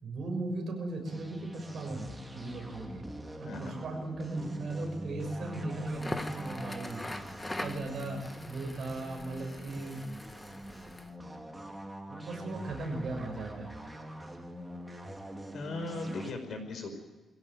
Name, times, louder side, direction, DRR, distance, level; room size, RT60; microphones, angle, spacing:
voice 1, 0.0-3.1 3.4-7.0 7.6-10.0 12.1-13.7, right 2 dB, 50° right, 3 dB, 6.3 m, -37 dB
sound 1, 1.0-16.3, right 1 dB, 10° right, 2.4 m, -44 dB
voice 2, 3.5-3.8 15.5-16.9, left 2 dB, 55° left, 6 dB, 5.1 m, -38 dB
Crackle, 5.9-11.1, left 1 dB, 10° left, 1.2 m, -42 dB
23.0 x 16.5 x 9.5 m, 1.3 s
wide cardioid pair, 160°, 0 cm